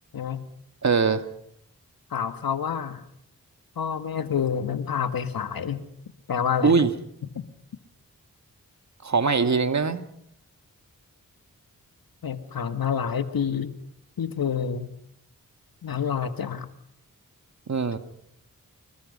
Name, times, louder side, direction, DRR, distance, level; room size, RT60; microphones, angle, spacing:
voice 1, 0.1-0.4 2.1-3.0 3.8-5.8 6.3-6.7 7.3-7.4 12.2-13.7 14.2-14.9 15.8-16.7, left 7 dB, 85° left, 10 dB, 1.7 m, -28 dB
voice 2, 0.8-1.3 6.6-6.9 9.0-10.1 17.7-18.0, right 4 dB, 50° right, 9 dB, 1.9 m, -22 dB
26.5 x 22.0 x 5.4 m, 0.70 s
cardioid pair, 60°, 35 cm